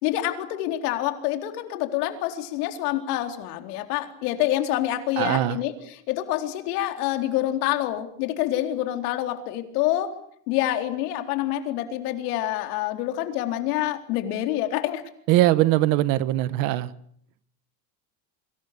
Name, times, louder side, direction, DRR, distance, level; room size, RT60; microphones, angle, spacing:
voice 1, 0.0-10.2 10.5-15.0, left 13 dB, 65° left, 4.1 m, -27 dB
voice 2, 5.2-5.6 15.3-16.9, right 16 dB, 40° right, 1.1 m, -21 dB
28.5 x 25.5 x 6.8 m
supercardioid pair, 165°, 49 cm